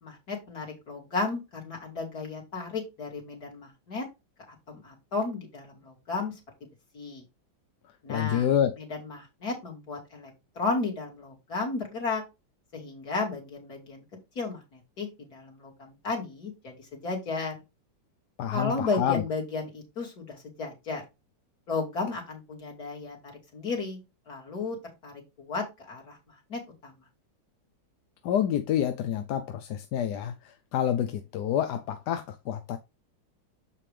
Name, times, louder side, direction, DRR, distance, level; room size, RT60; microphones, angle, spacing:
voice 1, 0.0-4.0 4.5-6.3 6.9-7.2 8.0-8.5 8.8-12.2 12.7-14.0 14.3-16.7 17.0-17.5 18.5-21.0 21.7-24.0 24.3-24.8 25.0-26.9, left 3 dB, 55° left, 3.3 m, -34 dB
voice 2, 8.1-8.8 18.4-19.2 28.2-30.3 30.7-32.8, left 10 dB, 70° left, 1.2 m, -27 dB
7.2 x 5.5 x 3.3 m
omnidirectional pair, 2.0 m